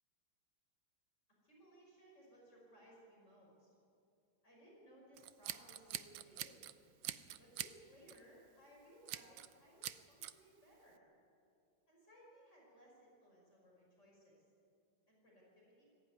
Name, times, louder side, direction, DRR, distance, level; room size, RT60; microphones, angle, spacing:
voice 1, 1.4-3.7 4.4-6.6 7.4-11.0 11.9-14.5 15.1-15.8, equal, 35° left, -4 dB, 5.4 m, -63 dB
Scissors, 5.2-6.7 7.0-7.8 8.1-8.3 9.1-9.5 9.8-10.3, right 13 dB, 70° right, 1.3 m, -45 dB
20.0 x 15.0 x 9.5 m, 2.5 s
omnidirectional pair, 2.2 m